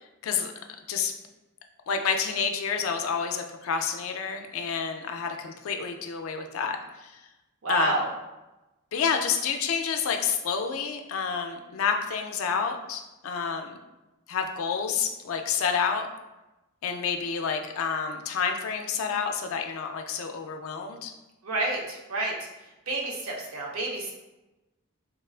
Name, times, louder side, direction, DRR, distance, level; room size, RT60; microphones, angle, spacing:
voice 1, 1.9-6.8 7.7-8.0 8.9-13.8 14.3-16.1 16.8-21.1, left 6 dB, 75° left, 5 dB, 0.4 m, -29 dB
voice 2, 7.6-8.1 21.4-22.3 22.9-24.1, right 2 dB, 85° right, -1 dB, 0.6 m, -29 dB
3.5 x 2.2 x 2.4 m, 1.0 s
head